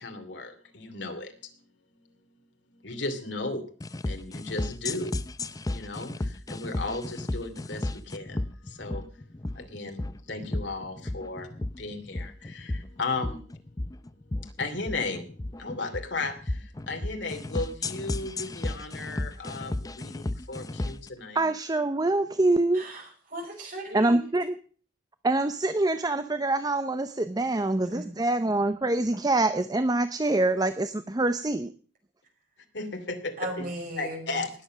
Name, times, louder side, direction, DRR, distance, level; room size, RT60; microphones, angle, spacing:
voice 1, 0.0-1.5 2.0-2.1 2.7-3.6 4.1-13.4 14.3-21.5 32.7-33.7 34.0-34.5, left 3 dB, 75° left, 5 dB, 2.8 m, -36 dB
sound 1, 3.8-21.1, left 2 dB, 20° left, 0.6 m, -34 dB
voice 2, 21.3-22.8 23.9-24.6 25.2-31.7, right 2 dB, 20° right, 11 dB, 0.6 m, -25 dB
voice 3, 22.7-24.2 27.8-28.1 33.4-34.3, right 1 dB, 50° right, 1 dB, 5.4 m, -37 dB
19.5 x 7.7 x 6.2 m, 0.43 s
head